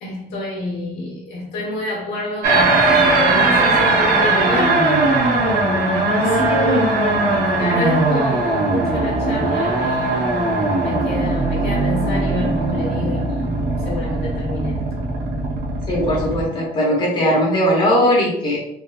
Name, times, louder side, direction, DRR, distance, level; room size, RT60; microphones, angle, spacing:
voice 1, 0.0-4.9 6.2-13.5 13.8-14.8, left 1 dB, 75° left, -2 dB, 1.2 m, -28 dB
sound 1, 2.4-16.4, right 2 dB, 65° right, 0.7 m, -19 dB
voice 2, 15.9-18.6, equal, 30° left, -3 dB, 1.0 m, -18 dB
3.4 x 2.2 x 2.3 m, 0.77 s
cardioid pair, 110°, 17 cm